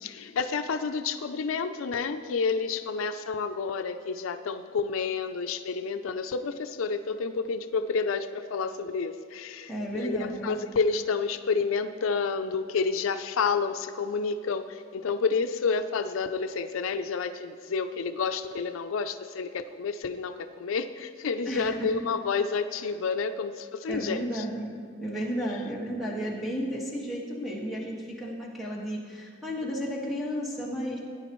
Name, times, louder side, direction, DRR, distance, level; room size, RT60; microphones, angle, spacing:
voice 1, 0.0-24.4, left 5 dB, 85° left, 9 dB, 0.4 m, -30 dB
voice 2, 9.7-10.6 21.4-21.9 23.9-24.7 25.0-31.0, equal, ahead, -4 dB, 1.6 m, -33 dB
16.5 x 9.9 x 3.1 m, 2.1 s
head